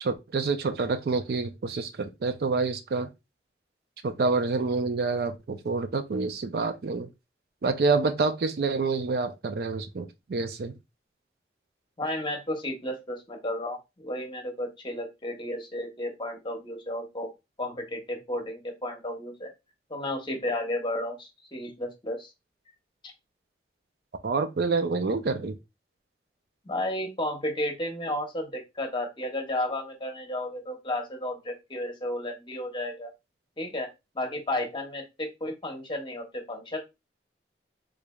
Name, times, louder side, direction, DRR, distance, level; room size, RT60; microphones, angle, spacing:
voice 1, 0.0-3.1 4.0-7.1 7.6-10.8 24.2-25.6, right 4 dB, 60° right, 0.4 m, -27 dB
voice 2, 12.0-17.3 17.6-19.5 19.9-22.3 26.6-33.1 33.6-33.9 34.1-36.8, left 1 dB, 25° left, 0.8 m, -33 dB
3.7 x 3.1 x 2.2 m
head